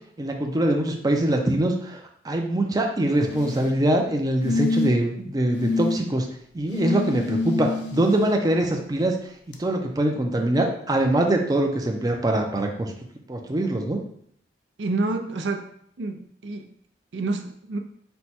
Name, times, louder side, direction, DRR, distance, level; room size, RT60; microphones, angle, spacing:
voice 1, 0.2-6.3 6.5-9.1 9.5-12.9 13.3-14.0, right 1 dB, 20° right, 2 dB, 0.4 m, -23 dB
sound 1, 3.2-3.7 4.4-5.1 5.5-6.0 6.7-8.3 9.5-9.6, left 3 dB, 70° left, 0.5 m, -27 dB
voice 2, 14.8-15.7 16.0-16.7 17.1-17.8, right 2 dB, 85° right, 5 dB, 0.5 m, -28 dB
4.4 x 2.2 x 4.2 m, 0.65 s
head